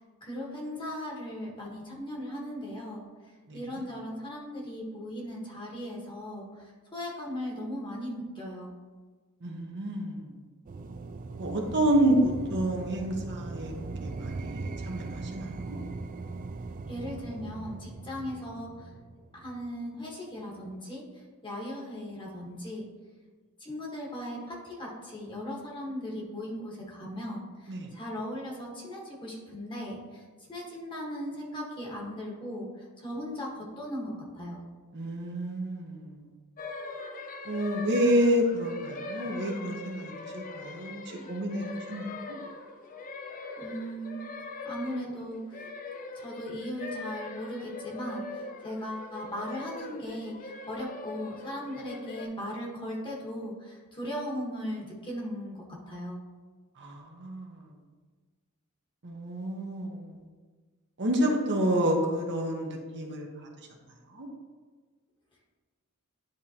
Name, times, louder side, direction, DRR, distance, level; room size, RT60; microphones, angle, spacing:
voice 1, 0.2-3.0 3.5-6.6 6.9-8.7 16.9-18.9 19.3-21.0 21.4-22.8 23.6-30.2 30.5-32.7 33.0-34.6 43.6-44.2 44.6-45.6 46.1-56.2, equal, 20° left, -3 dB, 1.4 m, -38 dB
voice 2, 3.5-3.9 9.4-10.3 11.4-13.7 14.0-15.8 27.7-27.9 34.9-36.3 37.4-42.3 56.8-57.7 59.0-60.2 61.0-63.5 64.1-64.3, right 1 dB, 55° right, 1 dB, 0.9 m, -29 dB
sound 1, 10.7-19.7, right 3 dB, 40° right, 0.3 m, -39 dB
sound 2, 36.6-52.3, left 3 dB, 40° left, 0.4 m, -41 dB
10.5 x 3.7 x 2.9 m, 1.4 s
head